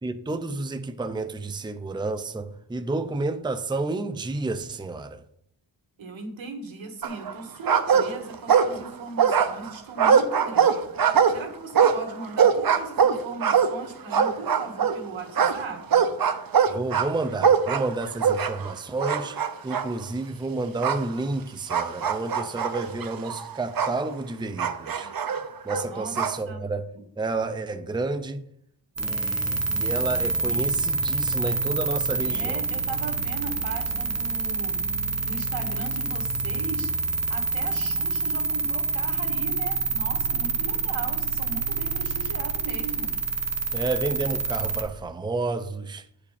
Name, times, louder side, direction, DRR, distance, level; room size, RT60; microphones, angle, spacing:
voice 1, 0.0-5.2 16.7-19.4 19.6-25.1 25.6-26.8 27.2-28.4 29.0-32.6 43.7-46.0, right 3 dB, 10° right, 0.6 m, -30 dB
voice 2, 6.0-16.1 25.8-26.1 26.5-26.7 26.9-27.0 32.3-34.8 35.2-36.9 37.3-43.1, right 3 dB, 90° right, 1.9 m, -38 dB
sound 1, 7.0-7.4 7.7-8.9 9.2-15.0 15.4-18.7 19.0-19.9 20.8-21.0 21.7-24.0 24.6-26.4, right 7 dB, 50° right, 0.8 m, -22 dB
sound 2, 29.0-44.8, right 4 dB, 35° right, 1.2 m, -27 dB
9.4 x 5.0 x 6.9 m
wide cardioid pair, 140°, 45 cm